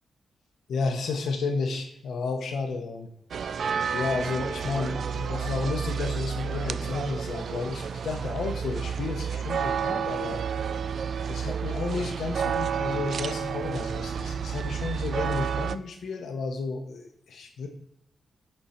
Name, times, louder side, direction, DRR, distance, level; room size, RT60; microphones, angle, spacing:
voice 1, 0.7-3.1 3.4-10.4 11.3-17.7, left 4 dB, 75° left, 3 dB, 0.8 m, -32 dB
sound 1, 3.3-15.8, right 7 dB, 55° right, 0.3 m, -30 dB
10.5 x 4.4 x 4.3 m, 0.80 s
wide cardioid pair, 175°, 0 cm